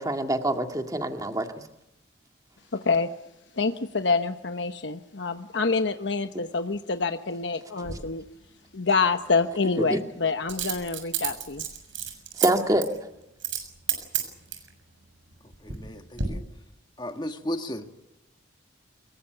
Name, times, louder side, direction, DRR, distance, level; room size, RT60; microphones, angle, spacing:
voice 1, 0.0-1.5 9.8-10.0 12.4-12.8, right 1 dB, 20° right, 5 dB, 2.0 m, -25 dB
voice 2, 2.7-3.1 3.6-8.2 8.7-11.6, left 4 dB, 70° left, 8 dB, 1.1 m, -26 dB
Coin (dropping), 7.8-8.0 10.5-12.5 12.8-13.0 13.4-13.6 13.9-14.7 15.3-15.9 16.2-16.3, right 9 dB, 85° right, 6.7 m, -30 dB
voice 3, 15.6-16.4 17.0-17.9, equal, 25° left, 6 dB, 1.6 m, -34 dB
24.0 x 22.0 x 8.0 m, 0.91 s
head